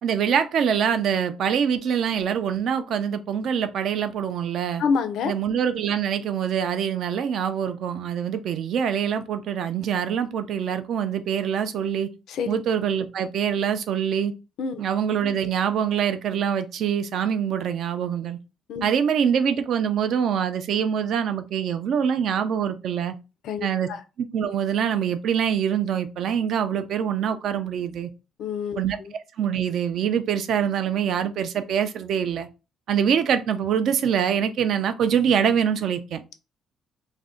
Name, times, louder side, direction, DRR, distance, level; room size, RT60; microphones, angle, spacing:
voice 1, 0.0-4.8 5.2-12.1 12.5-14.3 14.8-18.4 18.8-23.1 23.6-23.9 24.2-28.1 28.8-32.5 32.9-36.2, right 8 dB, 60° right, 0.4 m, -24 dB
voice 2, 4.8-5.3 12.3-12.5 14.6-14.8 18.7-18.9 23.4-24.0 28.4-29.1, left 6 dB, 70° left, 0.4 m, -27 dB
2.5 x 2.1 x 3.6 m
cardioid pair, 135°, 0 cm